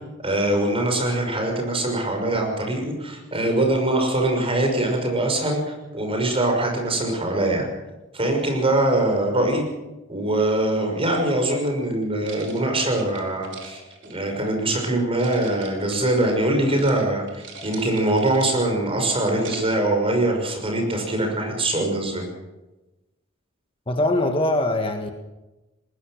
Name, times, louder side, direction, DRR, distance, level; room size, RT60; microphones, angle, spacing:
voice 1, 0.2-7.7 8.1-9.6 10.1-22.2, right 1 dB, 30° right, 3 dB, 6.1 m, -23 dB
sound 1, 12.2-14.9 15.2-16.4 16.7-17.0 17.3-18.8 19.2-19.9, right 4 dB, 65° right, 4.5 m, -42 dB
voice 2, 23.9-25.1, left 1 dB, 25° left, 4 dB, 1.6 m, -22 dB
20.5 x 20.0 x 6.6 m, 1.0 s
head